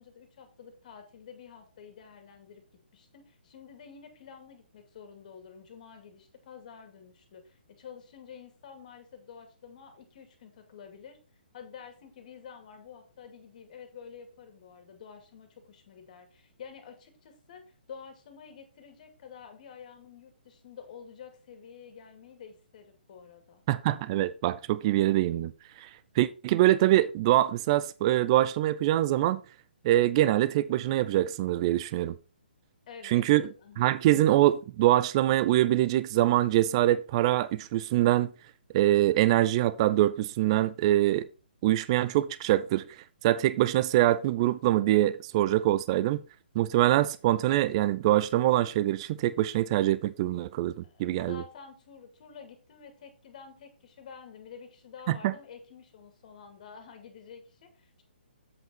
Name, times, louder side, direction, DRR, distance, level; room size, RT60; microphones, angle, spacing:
voice 1, 0.0-2.6 2.9-11.2 11.5-23.6 32.9-34.0 50.8-58.0, left 6 dB, 45° left, 2.4 m, -49 dB
voice 2, 23.7-25.5 25.8-25.9 26.2-29.4 29.8-32.1 33.0-33.4 33.8-38.3 38.7-41.3 41.6-42.9 43.2-46.2 46.6-51.4 55.1-55.3, right 14 dB, 35° right, 0.4 m, -24 dB
8.0 x 5.6 x 4.3 m
hypercardioid pair, 140°, 6 cm